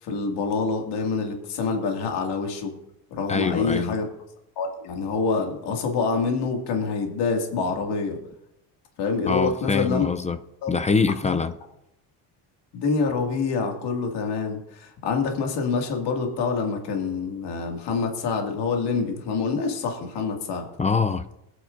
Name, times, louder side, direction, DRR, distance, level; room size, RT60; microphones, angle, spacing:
voice 1, 0.0-2.7 3.1-4.1 4.6-8.2 9.0-10.1 10.6-10.8 11.2-11.4 12.7-20.7, left 4 dB, 60° left, 2.3 m, -26 dB
voice 2, 3.3-4.0 9.3-10.4 10.7-11.5 20.8-21.3, left 5 dB, 15° left, 0.4 m, -24 dB
21.5 x 9.4 x 2.6 m
supercardioid pair, 105°, 45 cm